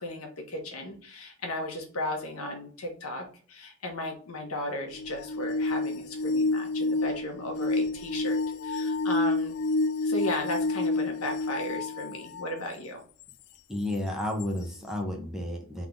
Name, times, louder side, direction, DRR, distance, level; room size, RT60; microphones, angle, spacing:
voice 1, 0.0-9.6 10.0-13.0, left 1 dB, 90° left, 2 dB, 1.4 m, -35 dB
sound 1, 4.9-12.6 13.3-13.4 14.4-14.5, left 3 dB, 55° left, 0.3 m, -29 dB
voice 2, 13.7-15.9, left 1 dB, ahead, 1 dB, 0.9 m, -32 dB
3.8 x 3.7 x 3.8 m, 0.43 s
head